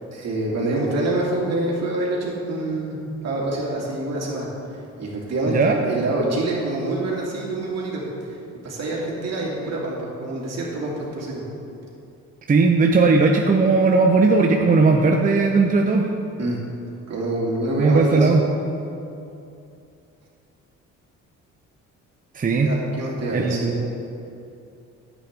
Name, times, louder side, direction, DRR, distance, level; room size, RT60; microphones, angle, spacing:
voice 1, 0.1-3.0 3.2-4.5 5.0-8.4 8.6-11.4 16.4-16.6 17.1-18.4 22.6-23.9, right 2 dB, 60° right, -3 dB, 2.5 m, -26 dB
voice 2, 5.5-5.8 12.5-16.1 17.8-18.4 22.3-22.7 23.3-23.8, right 3 dB, 30° right, 2 dB, 0.6 m, -17 dB
10.0 x 8.4 x 3.7 m, 2.7 s
cardioid pair, 90°, 30 cm